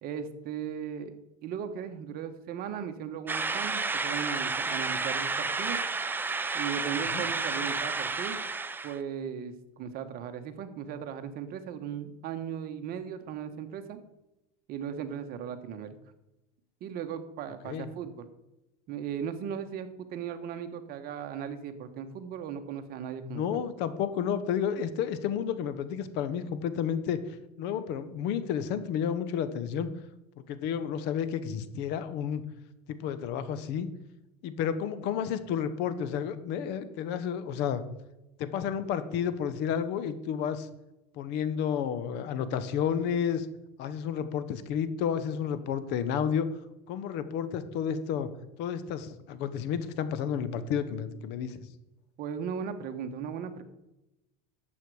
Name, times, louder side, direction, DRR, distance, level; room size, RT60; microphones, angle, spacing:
voice 1, 0.0-5.8 6.5-8.4 8.8-14.0 14.7-16.0 16.8-18.3 18.9-23.6 52.2-53.6, right 8 dB, 45° right, 8 dB, 1.2 m, -37 dB
sound 1, 3.3-9.0, right 4 dB, 10° right, 0.5 m, -31 dB
voice 2, 23.2-27.2 27.6-29.9 30.5-32.4 32.9-33.9 34.4-37.8 38.4-40.7 41.1-43.5 43.8-46.5 46.9-48.3 48.6-51.6, left 8 dB, 55° left, 13 dB, 1.0 m, -31 dB
11.5 x 7.9 x 4.8 m, 0.95 s
supercardioid pair, 130°, 21 cm